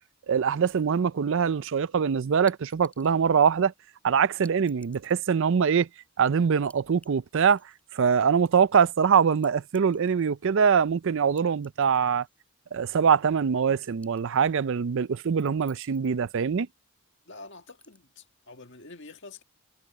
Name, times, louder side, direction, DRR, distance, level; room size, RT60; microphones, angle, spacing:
voice 1, 0.3-3.7 4.0-5.9 6.2-7.6 7.9-12.3 12.7-16.7, right 6 dB, 60° right, 0.4 m, -23 dB
sound 1, 0.7-1.2 2.5-3.2 4.4-5.3 6.7-7.1 7.4-8.2 9.4-10.5 11.4-12.4 12.7-12.8 13.8-14.6 15.4-16.2 17.7-18.0, left 2 dB, 5° left, 6.6 m, -56 dB
voice 2, 17.3-19.4, left 3 dB, 55° left, 1.9 m, -47 dB
head